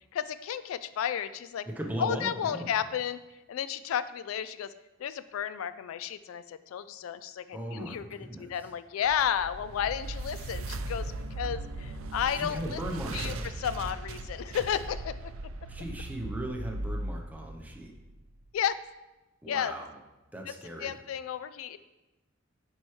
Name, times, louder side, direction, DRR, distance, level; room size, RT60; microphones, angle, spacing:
voice 1, 0.1-1.7 2.0-3.2 3.5-4.7 5.0-12.8 13.1-15.3 18.5-18.8 19.5-19.7 20.8-21.8, left 9 dB, 85° left, 14 dB, 0.3 m, -32 dB
voice 2, 1.7-2.7 7.5-8.5 12.3-13.5 15.7-17.9 19.4-19.9 20.3-20.9, right 1 dB, 10° right, 0 dB, 0.8 m, -38 dB
sound 1, 9.0-18.2, right 2 dB, 85° right, 0.5 m, -38 dB
10.5 x 4.6 x 3.2 m, 1.1 s
head